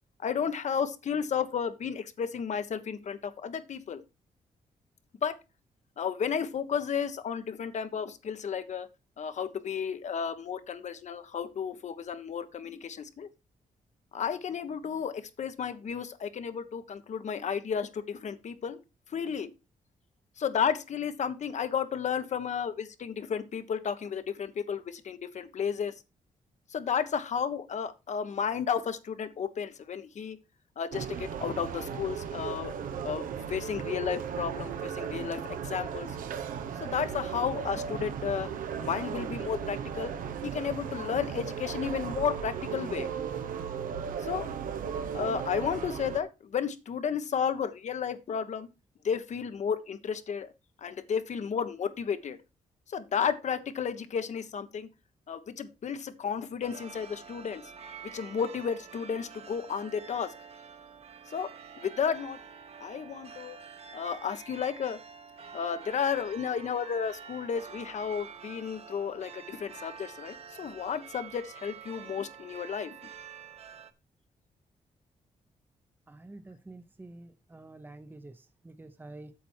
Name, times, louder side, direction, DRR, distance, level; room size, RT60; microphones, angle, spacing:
voice 1, 0.2-4.0 5.2-5.3 6.0-8.9 9.2-13.3 14.1-18.8 19.1-19.5 20.4-25.9 26.7-30.4 30.8-32.7 33.0-36.2 36.8-38.5 38.8-40.1 40.4-43.1 44.2-44.5 45.1-48.7 49.0-50.5 50.8-52.4 52.9-54.9 55.3-57.6 58.0-60.3 61.3-61.5 61.8-62.4 62.8-63.6 63.9-65.0 65.5-72.9, left 7 dB, 60° left, 1.3 m, -33 dB
sound 1, 30.9-46.2, right 7 dB, 85° right, 1.1 m, -36 dB
sound 2, 56.6-73.9, right 7 dB, 50° right, 1.3 m, -47 dB
voice 2, 76.1-79.3, right 2 dB, 15° right, 0.9 m, -48 dB
8.5 x 7.0 x 4.5 m
cardioid pair, 90°, 14 cm